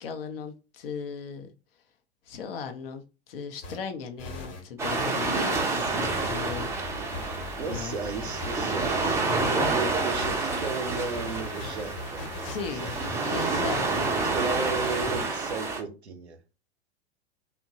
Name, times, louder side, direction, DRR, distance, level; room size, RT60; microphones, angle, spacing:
voice 1, 0.0-1.5 2.3-7.2 7.6-8.0 12.4-12.8 13.2-14.1, left 6 dB, 60° left, 0.6 m, -37 dB
sound 1, 3.6-3.8 4.2-15.3, left 2 dB, 40° left, 1.1 m, -39 dB
sound 2, 4.8-15.8, right 3 dB, 10° right, 0.4 m, -29 dB
voice 2, 7.6-12.2 12.8-12.9 14.3-16.4, right 4 dB, 80° right, 0.6 m, -34 dB
2.8 x 2.1 x 2.7 m
figure-of-eight pair, 95°, 33 cm